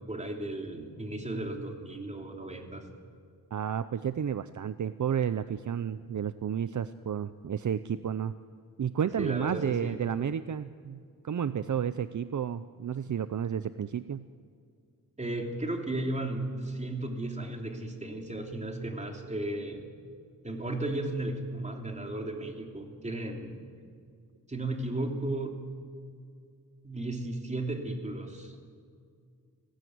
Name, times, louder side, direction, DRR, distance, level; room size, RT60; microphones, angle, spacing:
voice 1, 0.0-2.9 9.2-10.0 15.2-19.8 20.4-23.6 24.5-25.6 26.8-28.6, right 2 dB, 20° right, 3 dB, 3.0 m, -35 dB
voice 2, 3.5-8.4 8.8-14.3, right 8 dB, 55° right, 13 dB, 0.7 m, -31 dB
30.0 x 20.5 x 9.5 m, 2.2 s
wide cardioid pair, 165°, 35 cm